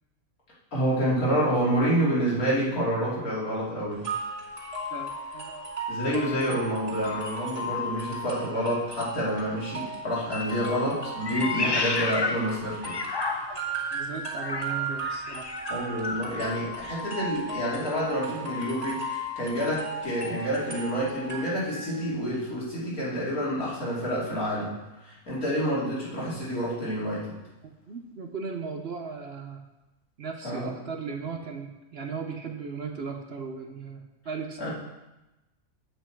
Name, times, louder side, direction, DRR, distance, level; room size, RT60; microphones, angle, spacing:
voice 1, 0.7-4.0 5.9-13.0 15.7-24.7 25.0-27.4 30.4-30.7 34.6-34.7, equal, 80° left, -7 dB, 3.3 m, -28 dB
sound 1, 4.0-22.0, right 1 dB, 25° right, 2.3 m, -36 dB
voice 2, 4.9-5.7 13.9-15.5 27.6-29.6 30.2-34.7, right 5 dB, 55° right, 4 dB, 0.9 m, -37 dB
Meow, 11.2-13.8 14.3-16.4, left 3 dB, 40° left, 0.3 m, -31 dB
8.5 x 8.3 x 4.6 m, 1.0 s
omnidirectional pair, 1.5 m